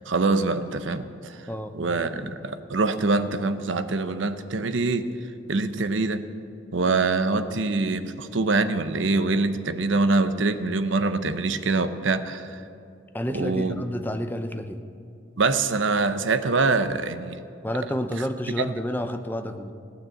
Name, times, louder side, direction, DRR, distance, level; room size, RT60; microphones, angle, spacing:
voice 1, 0.0-1.5 1.7-5.1 5.5-6.3 6.7-12.6 13.3-13.8 15.4-17.4 18.6-18.7, right 3 dB, 75° right, 11 dB, 0.8 m, -24 dB
voice 2, 13.1-14.8 17.6-19.7, equal, 10° left, 7 dB, 0.6 m, -29 dB
17.5 x 9.4 x 7.6 m, 2.6 s
head